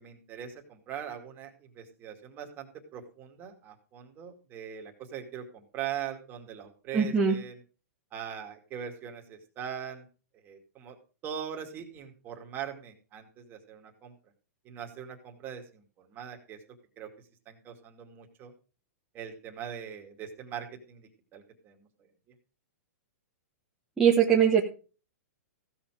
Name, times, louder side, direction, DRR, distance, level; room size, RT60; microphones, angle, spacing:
voice 1, 0.0-7.6 8.1-10.1 10.4-11.0 11.2-14.1 14.6-16.6 17.0-17.1 17.5-18.5 19.1-21.9, right 9 dB, 25° right, 4 dB, 2.4 m, -41 dB
voice 2, 6.9-7.3 24.0-24.6, right 7 dB, 5° right, -3 dB, 1.3 m, -21 dB
15.5 x 7.1 x 4.9 m, 0.36 s
hypercardioid pair, 155°, 9 cm